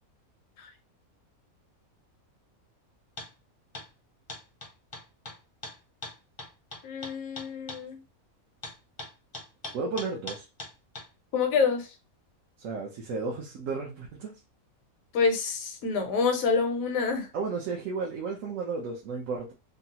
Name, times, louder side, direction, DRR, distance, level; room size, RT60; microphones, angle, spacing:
sound 1, 3.2-3.3 3.7-3.9 4.3-7.8 8.6-11.1, left 2 dB, 25° left, 0.6 m, -41 dB
voice 1, 6.8-8.0 11.3-11.9 15.1-17.3, left 5 dB, 75° left, 1.1 m, -27 dB
voice 2, 9.7-10.4 12.6-14.3 17.3-19.5, right 4 dB, 70° right, 1.0 m, -33 dB
3.8 x 2.0 x 2.8 m
omnidirectional pair, 1.5 m